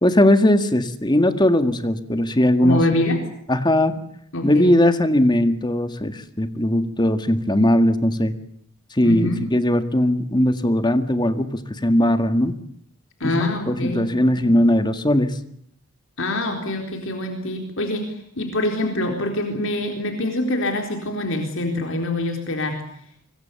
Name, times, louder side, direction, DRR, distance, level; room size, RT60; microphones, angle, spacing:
voice 1, 0.0-2.8 3.5-3.9 4.4-8.3 8.9-12.6 13.2-15.4, left 1 dB, 20° left, 9 dB, 1.9 m, -19 dB
voice 2, 2.6-3.2 4.3-4.7 9.0-9.4 13.2-14.5 16.2-22.8, left 1 dB, 60° left, 4 dB, 4.0 m, -25 dB
25.5 x 23.5 x 7.0 m, 0.68 s
head